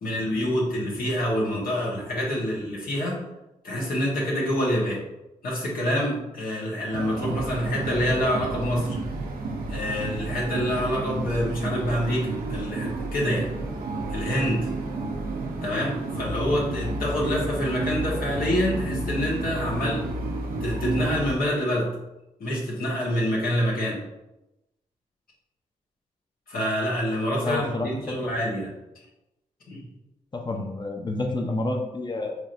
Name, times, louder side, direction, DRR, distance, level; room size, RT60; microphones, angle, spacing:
voice 1, 0.0-3.2 3.6-5.0 5.4-9.0 9.7-13.5 14.1-14.7 15.6-20.0 20.6-21.9 22.4-24.0 26.5-28.7 29.7-29.8, equal, 75° left, -4 dB, 1.3 m, -26 dB
sound 1, 6.9-21.3, right 2 dB, 80° right, 0.6 m, -31 dB
voice 2, 27.4-28.2 28.6-28.7 30.3-32.4, left 2 dB, 30° left, 3 dB, 0.7 m, -29 dB
4.6 x 3.2 x 2.6 m, 0.94 s
supercardioid pair, 45°, 15 cm